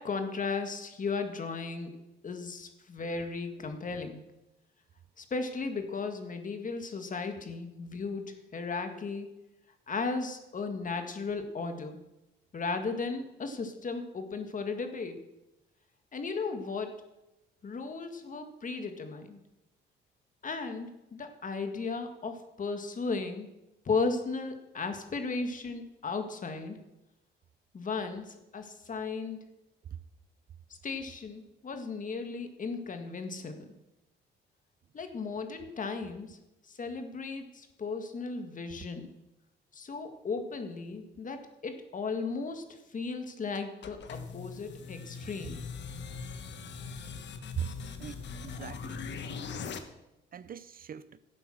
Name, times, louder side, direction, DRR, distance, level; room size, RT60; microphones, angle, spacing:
voice 1, 0.0-2.0 2.2-4.2 5.2-9.3 9.9-12.0 12.5-15.2 16.1-17.0 17.6-19.4 20.4-23.5 23.9-26.8 27.7-29.4 30.8-33.8 34.9-36.4 36.7-39.1 39.7-42.7 42.9-45.6, left 4 dB, 40° left, 7 dB, 1.8 m, -35 dB
sound 1, 43.5-49.8, left 5 dB, 65° left, 1.2 m, -41 dB
voice 2, 48.0-49.1 50.3-51.1, right 9 dB, 45° right, 15 dB, 0.6 m, -40 dB
12.0 x 8.6 x 6.4 m, 0.95 s
cardioid pair, 90°, 20 cm